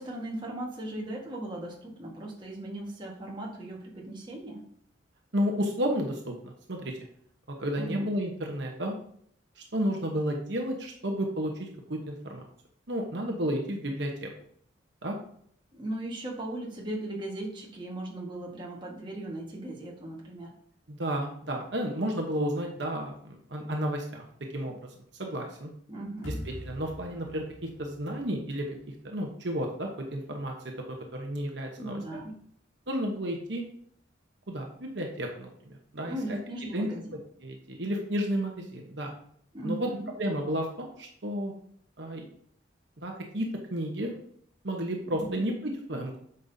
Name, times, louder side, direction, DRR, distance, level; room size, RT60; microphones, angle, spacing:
voice 1, 0.0-4.6 7.7-8.1 15.7-20.5 25.9-26.5 31.8-32.4 36.1-37.1 39.5-40.1 45.1-45.4, right 1 dB, 25° right, -2 dB, 1.6 m, -37 dB
voice 2, 5.3-7.0 7.6-9.0 9.6-12.5 12.9-14.3 15.0-15.1 20.9-24.2 24.5-24.8 25.2-25.7 26.2-26.3 26.6-28.7 29.0-30.5 31.1-32.2 32.9-33.6 34.5-36.2 36.7-36.9 37.4-39.1 39.6-39.9 40.2-41.5 42.0-42.2 43.0-43.5 43.7-44.1 44.6-46.2, equal, 65° right, 1 dB, 1.1 m, -32 dB
sound 1, 26.2-29.3, left 1 dB, 75° left, 1.9 m, -43 dB
8.6 x 5.5 x 2.8 m, 0.64 s
head